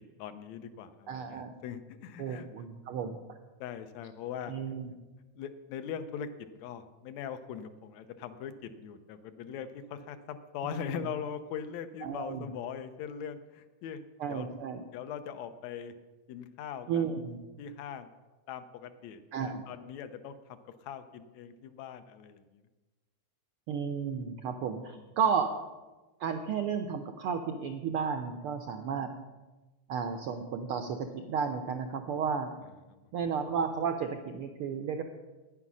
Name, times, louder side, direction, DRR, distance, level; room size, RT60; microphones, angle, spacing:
voice 1, 0.2-2.5 3.6-4.5 5.4-6.3 6.6-14.0 14.3-14.5 14.9-15.9 16.3-17.1 17.6-18.1 18.5-20.4 20.8-22.6 24.8-25.0 32.9-33.0, left 8 dB, 75° left, 10 dB, 1.9 m, -41 dB
voice 2, 1.1-1.5 2.2-3.2 4.5-4.9 10.9-11.1 12.0-12.5 14.2-14.8 16.9-17.4 19.3-19.6 23.7-25.5 26.2-29.1 29.9-32.5 33.1-35.0, right 6 dB, 80° right, 6 dB, 1.2 m, -33 dB
9.8 x 9.7 x 6.1 m, 1.2 s
omnidirectional pair, 3.3 m